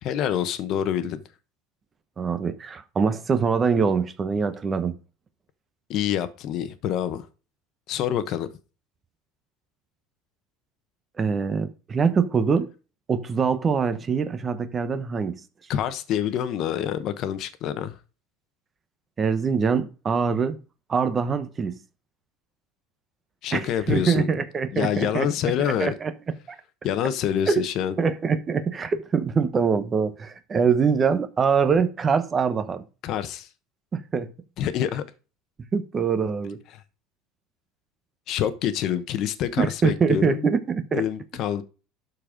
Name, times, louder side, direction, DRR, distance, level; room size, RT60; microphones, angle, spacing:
voice 1, 0.0-1.2 5.9-7.3 7.9-8.5 15.7-18.0 23.4-24.3 24.7-25.9 26.8-27.9 33.0-33.5 34.6-35.0 38.3-40.5 40.9-41.6, left 10 dB, 50° left, 1.1 m, -26 dB
voice 2, 2.2-5.0 11.2-12.7 13.1-15.4 19.2-20.6 20.9-21.8 23.5-25.3 25.6-26.1 26.5-26.6 27.5-27.6 28.0-32.8 33.9-34.3 35.7-36.6 39.6-41.0, right 5 dB, 25° right, 1.0 m, -24 dB
12.5 x 4.5 x 5.2 m
supercardioid pair, 135°, 0 cm